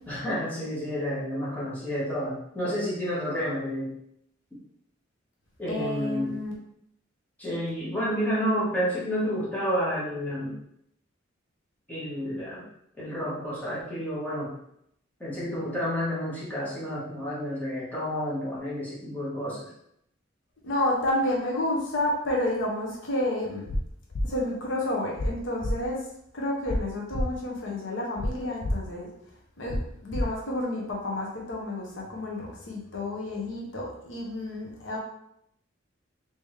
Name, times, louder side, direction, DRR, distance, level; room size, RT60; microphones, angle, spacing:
voice 1, 0.1-3.9 5.6-6.3 7.4-10.6 11.9-12.7 13.0-14.6 15.2-19.7, equal, 10° left, -9 dB, 1.3 m, -30 dB
voice 2, 5.7-6.5 20.6-23.7 24.2-26.1 26.3-29.1 29.6-35.0, left 1 dB, 70° left, -2 dB, 0.9 m, -30 dB
sound 1, 23.7-23.8 24.1-24.3 25.2-25.3 25.6-25.7 26.7-26.8 27.1-27.3 28.2-28.3 28.6-28.7 29.7-29.8 30.1-30.2, left 1 dB, 40° left, 0.4 m, -27 dB
3.4 x 2.9 x 3.2 m, 0.73 s
head